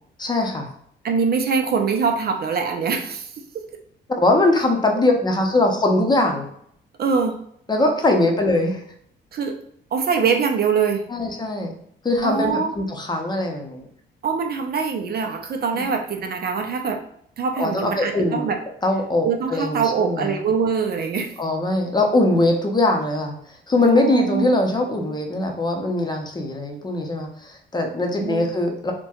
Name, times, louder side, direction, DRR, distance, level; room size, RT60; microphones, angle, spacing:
voice 1, 0.2-0.7 4.1-6.5 7.7-8.8 11.1-11.7 12.0-13.9 15.7-15.8 17.6-18.5 18.8-20.4 21.4-23.4 23.7-28.9, left 2 dB, 20° left, 2 dB, 0.7 m, -21 dB
voice 2, 1.0-3.6 7.0-7.4 8.2-8.3 9.3-9.5 9.9-11.1 12.2-12.8 14.2-17.0 17.4-18.6 19.2-21.3 23.8-24.6 28.2-28.5, right 5 dB, 50° right, 5 dB, 0.5 m, -23 dB
4.1 x 2.2 x 2.3 m, 0.67 s
cardioid pair, 90°, 20 cm